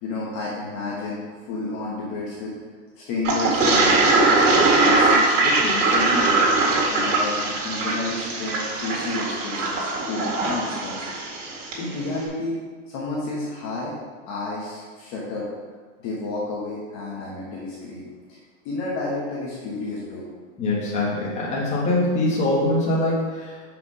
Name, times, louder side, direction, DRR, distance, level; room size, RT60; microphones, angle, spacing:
voice 1, 0.0-2.6 3.0-4.4 4.8-6.5 6.9-11.2 11.8-13.9 14.3-15.5 16.0-18.4 18.6-20.3, left 2 dB, 35° left, -5 dB, 1.3 m, -31 dB
Toilet flush, 3.2-11.8, right 3 dB, 80° right, 2.2 m, -21 dB
voice 2, 20.6-23.5, left 2 dB, 20° left, -5 dB, 1.6 m, -23 dB
5.8 x 5.1 x 4.9 m, 1.5 s
supercardioid pair, 155°, 37 cm